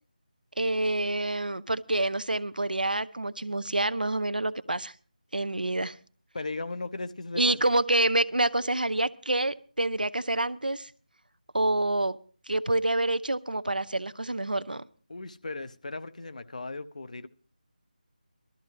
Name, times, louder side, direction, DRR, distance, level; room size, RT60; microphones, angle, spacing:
voice 1, 0.6-4.9 5.3-5.9 7.4-10.9 11.5-12.2 12.5-14.9, right 2 dB, 85° right, 0.6 m, -27 dB
voice 2, 6.3-7.6 15.1-17.3, left 3 dB, 55° left, 0.7 m, -37 dB
19.0 x 13.0 x 3.2 m
figure-of-eight pair, 160°, 5 cm